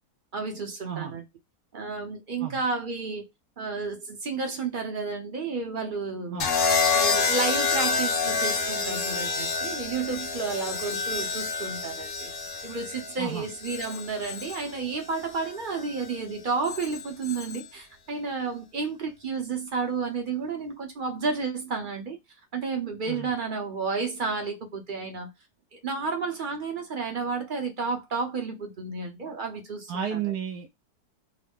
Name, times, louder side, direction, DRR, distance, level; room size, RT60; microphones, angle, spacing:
voice 1, 0.3-1.2 1.7-3.2 3.6-6.4 6.9-12.3 12.6-22.2 22.5-25.3 25.7-30.2, right 4 dB, 40° right, 0.8 m, -31 dB
sound 1, 6.4-14.5 15.7-16.1, left 4 dB, 60° left, 1.1 m, -28 dB
Telephone, 7.6-8.8 10.6-11.8 13.6-14.8 16.6-17.8, left 7 dB, 40° left, 0.5 m, -42 dB
voice 2, 29.9-30.8, right 8 dB, 80° right, 1.1 m, -32 dB
3.8 x 2.1 x 3.5 m
omnidirectional pair, 1.7 m